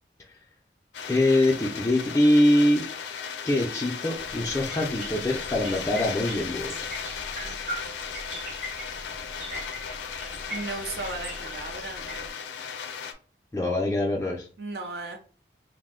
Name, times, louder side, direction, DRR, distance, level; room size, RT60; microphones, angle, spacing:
sound 1, 0.9-13.1, left 7 dB, 90° left, 0.4 m, -36 dB
voice 1, 1.0-2.8 3.4-6.7 13.5-14.5, left 1 dB, 15° left, -3 dB, 0.3 m, -23 dB
sound 2, 4.1-12.3, equal, 45° right, 1.1 m, -40 dB
voice 2, 10.5-12.3 14.6-15.2, right 3 dB, 65° right, 4 dB, 0.5 m, -35 dB
2.5 x 2.1 x 3.6 m, 0.39 s
head